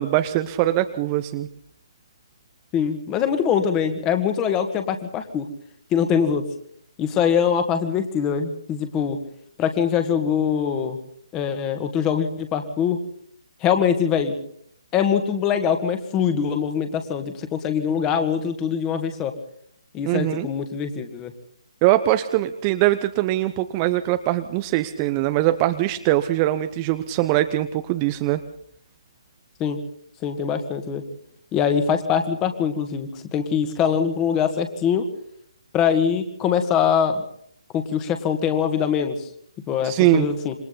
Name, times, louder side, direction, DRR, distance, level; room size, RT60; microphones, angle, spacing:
voice 1, 0.0-1.5 20.1-20.5 21.8-28.4 39.8-40.3, right 15 dB, 20° right, 10 dB, 0.8 m, -22 dB
voice 2, 2.7-5.5 5.9-6.5 7.0-9.2 9.6-11.0 11.3-13.0 13.6-14.4 14.9-19.3 19.9-21.3 29.6-29.8 30.2-31.0 31.5-35.1 35.7-37.2 37.7-39.3 39.7-40.5, left 7 dB, 15° left, 7 dB, 2.0 m, -23 dB
27.0 x 23.5 x 4.1 m, 0.66 s
figure-of-eight pair, 140°, 3 cm